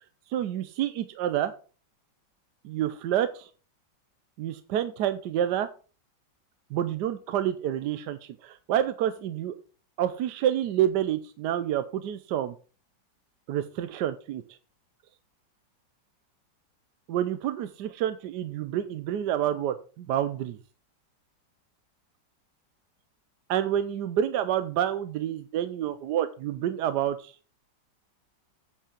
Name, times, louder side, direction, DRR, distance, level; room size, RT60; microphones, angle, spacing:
voice 1, 0.3-1.5 2.6-3.5 4.4-5.7 6.7-9.5 10.0-12.5 13.5-14.4 17.1-20.6 23.5-27.3, right 11 dB, 75° right, 11 dB, 1.2 m, -28 dB
8.6 x 5.4 x 5.0 m, 0.37 s
omnidirectional pair, 2.0 m